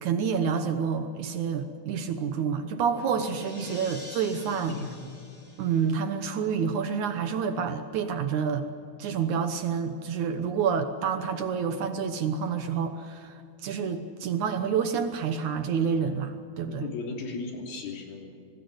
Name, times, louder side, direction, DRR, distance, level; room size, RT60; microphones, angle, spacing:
voice 1, 0.0-4.7 5.6-8.7 9.0-16.9, right 6 dB, 75° right, 8 dB, 1.7 m, -28 dB
sound 1, 2.3-6.8, left 1 dB, 20° left, 4.2 m, -48 dB
voice 2, 4.5-4.9 10.4-10.6 16.7-18.3, left 4 dB, 60° left, 2 dB, 4.8 m, -36 dB
25.5 x 19.5 x 8.1 m, 2.5 s
omnidirectional pair, 5.1 m